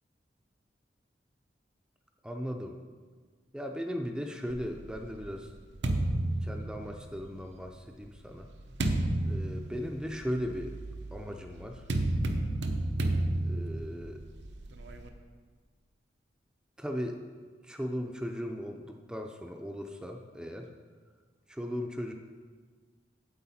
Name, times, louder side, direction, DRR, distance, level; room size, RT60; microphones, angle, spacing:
voice 1, 2.2-2.8 3.5-5.5 6.4-8.5 9.2-10.7 11.1-11.8 13.4-14.2 16.8-17.2 17.6-20.7 21.5-22.1, equal, 5° right, 3 dB, 0.4 m, -37 dB
sound 1, 4.5-7.3 8.0-15.1, right 1 dB, 85° right, 0.7 m, -32 dB
9.5 x 7.9 x 4.2 m, 1.5 s
head